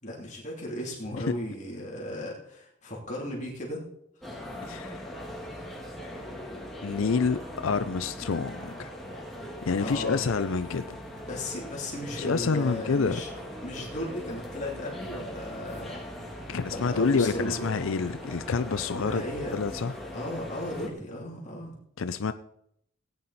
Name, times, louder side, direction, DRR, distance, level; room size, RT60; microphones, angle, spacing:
voice 1, 0.0-3.8 9.8-10.2 11.3-13.3 13.6-16.0 16.3-16.4 16.7-17.7 18.9-19.5 20.1-21.8, left 1 dB, 35° left, -3 dB, 2.9 m, -36 dB
sound 1, 4.2-20.9, equal, ahead, 1.9 m, -40 dB
voice 2, 4.6-5.1 6.8-8.9 9.6-11.0 12.2-13.2 16.5-19.2 19.5-19.9 22.0-22.3, left 5 dB, 70° left, 11 dB, 0.5 m, -28 dB
17.5 x 9.5 x 4.1 m, 0.74 s
head